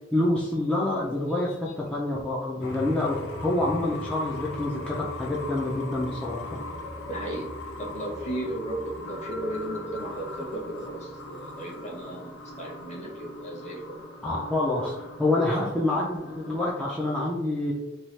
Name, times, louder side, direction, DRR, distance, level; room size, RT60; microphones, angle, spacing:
voice 1, 0.1-6.6 14.2-17.7, left 2 dB, 5° left, -6 dB, 0.3 m, -27 dB
sound 1, 2.6-16.7, left 1 dB, 65° left, 0.5 m, -39 dB
voice 2, 7.1-7.5 7.8-14.0, right 1 dB, 35° left, -1 dB, 0.8 m, -35 dB
2.8 x 2.2 x 3.1 m, 1.0 s
head